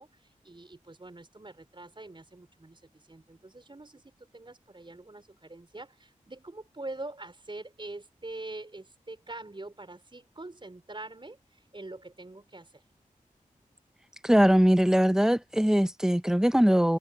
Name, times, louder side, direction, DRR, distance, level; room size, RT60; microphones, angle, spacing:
voice 1, 0.0-12.8, right 2 dB, 35° right, 5.2 m, -44 dB
voice 2, 14.2-17.0, equal, 5° right, 1.1 m, -21 dB
wide cardioid pair, 60°, 14 cm